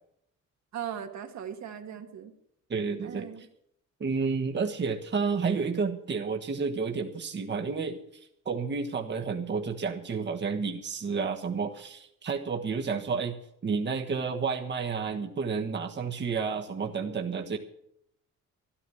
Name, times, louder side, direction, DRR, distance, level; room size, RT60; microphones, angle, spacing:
voice 1, 0.7-2.3 3.0-3.5, right 9 dB, 65° right, 5 dB, 1.7 m, -38 dB
voice 2, 2.7-3.3 4.0-17.6, right 5 dB, 35° right, 3 dB, 1.3 m, -31 dB
13.0 x 11.5 x 7.0 m, 0.73 s
cardioid pair, 90°, 30 cm